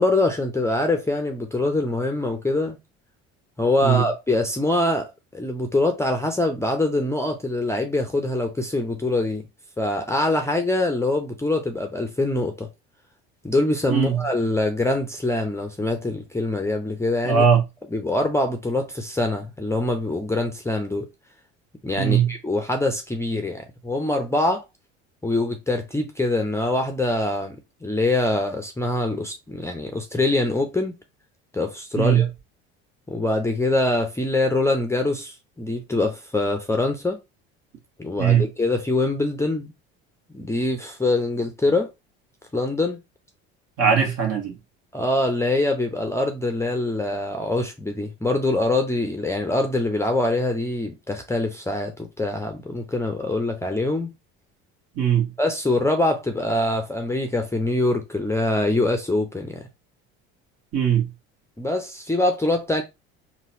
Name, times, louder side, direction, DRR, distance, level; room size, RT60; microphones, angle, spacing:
voice 1, 0.0-2.8 3.6-9.4 9.8-12.7 13.4-17.4 17.9-21.1 21.8-24.6 25.2-27.6 27.8-31.0 31.5-32.3 33.1-37.2 38.0-39.7 40.3-41.9 42.5-43.0 44.9-54.1 55.4-59.7 61.6-62.8, left 2 dB, 10° left, 0.6 m, -24 dB
voice 2, 17.2-17.6 22.0-22.3 31.9-32.2 38.2-38.4 43.8-44.5 55.0-55.3 60.7-61.1, right 7 dB, 55° right, 1.4 m, -19 dB
3.9 x 2.3 x 2.6 m
supercardioid pair, 80°, 31 cm